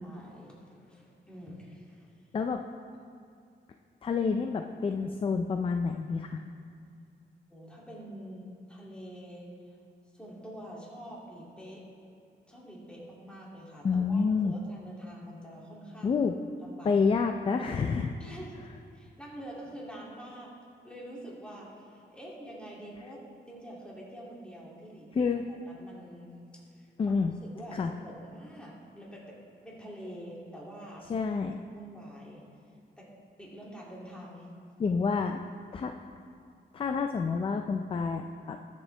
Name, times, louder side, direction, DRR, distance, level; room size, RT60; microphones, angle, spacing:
voice 1, 0.0-2.1 7.5-9.5 10.1-11.9 12.5-16.2 16.6-17.0 18.2-18.7 18.9-20.5 20.8-23.2 23.5-25.3 25.6-27.2 27.5-31.3 31.7-32.4 33.0-34.5, equal, 5° left, -5 dB, 2.6 m, -46 dB
voice 2, 4.0-6.4 13.8-14.5 16.0-16.3 16.8-18.1 25.1-25.4 27.0-27.3 27.7-27.9 31.1-31.6 34.8-35.4 35.7-35.9 36.7-38.6, left 5 dB, 30° left, 5 dB, 0.4 m, -28 dB
20.5 x 7.4 x 3.3 m, 2.4 s
wide cardioid pair, 155°, 18 cm